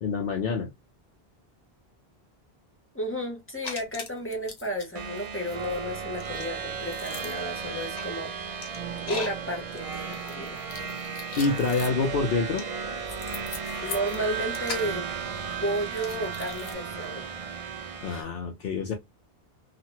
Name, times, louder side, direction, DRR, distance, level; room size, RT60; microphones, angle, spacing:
voice 1, 0.0-0.7 11.4-12.6 18.0-18.9, left 4 dB, 65° left, 0.8 m, -27 dB
voice 2, 2.9-8.3 9.1-10.6 13.8-15.1 15.6-17.3 18.1-18.3, equal, 15° left, 0.9 m, -32 dB
sound 1, 3.6-4.9 5.1-16.7, left 4 dB, 85° left, 1.2 m, -40 dB
sound 2, 5.0-18.2, right 6 dB, 45° right, 0.5 m, -35 dB
2.9 x 2.5 x 2.7 m
omnidirectional pair, 1.0 m